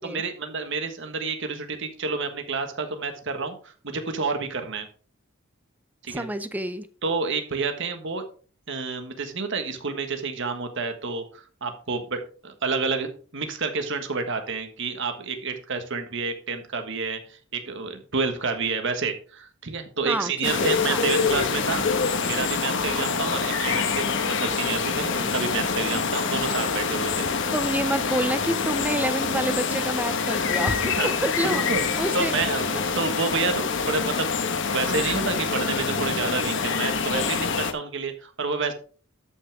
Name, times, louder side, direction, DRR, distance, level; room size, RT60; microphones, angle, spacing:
voice 1, 0.0-4.9 6.0-6.3 7.0-8.2 8.7-27.2 31.0-31.1 31.4-31.8 32.1-38.7, right 4 dB, 65° right, 7 dB, 1.5 m, -29 dB
voice 2, 6.1-6.9 20.0-21.0 27.5-31.7 32.0-32.3 32.7-32.9, right 1 dB, 10° right, 12 dB, 0.5 m, -28 dB
sound 1, 20.4-37.7, left 5 dB, 65° left, 1.1 m, -26 dB
12.5 x 5.9 x 3.5 m, 0.41 s
head